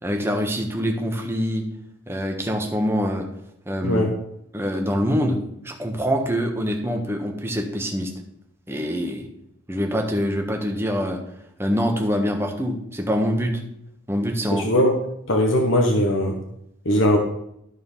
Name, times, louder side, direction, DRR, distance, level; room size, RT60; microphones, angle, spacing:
voice 1, 0.0-1.6 2.1-3.3 3.7-4.0 4.5-5.4 5.6-8.1 8.7-9.2 9.7-11.2 11.6-13.6 14.1-14.7, equal, 10° right, 2 dB, 1.3 m, -24 dB
voice 2, 14.5-15.0 15.3-16.4 16.8-17.2, left 1 dB, 70° left, 2 dB, 1.2 m, -19 dB
13.0 x 4.5 x 5.6 m, 0.77 s
head